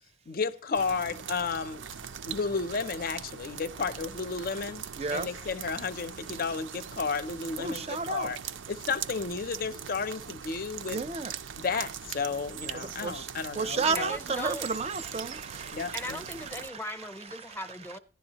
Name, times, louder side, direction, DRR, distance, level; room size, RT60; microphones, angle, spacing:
voice 1, 0.3-1.8 2.3-4.8 5.1-8.4 8.7-11.0 11.6-14.1 15.7-16.2, left 4 dB, 50° left, 0.5 m, -32 dB
sound 1, 0.7-16.7, right 8 dB, 90° right, 0.5 m, -41 dB
voice 2, 5.0-5.3 7.6-8.3 10.9-11.3 12.7-13.3 13.6-16.0 16.6-16.8, right 4 dB, 35° right, 0.5 m, -32 dB
voice 3, 13.9-14.7 15.9-18.0, left 1 dB, 10° left, 0.6 m, -38 dB
15.0 x 10.5 x 2.8 m
head